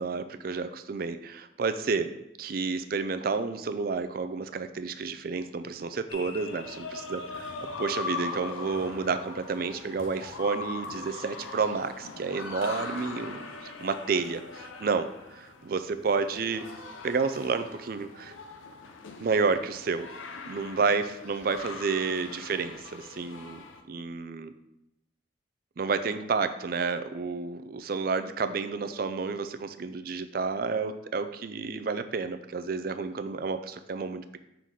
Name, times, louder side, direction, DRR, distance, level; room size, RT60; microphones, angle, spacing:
voice 1, 0.0-2.1 2.4-7.5 7.8-16.7 17.0-18.3 19.2-20.1 20.5-23.6 23.9-24.5 25.8-34.4, right 4 dB, 50° right, 10 dB, 0.4 m, -30 dB
sound 1, 6.1-23.8, left 3 dB, 90° left, 0.6 m, -41 dB
5.7 x 3.9 x 4.7 m, 0.84 s
head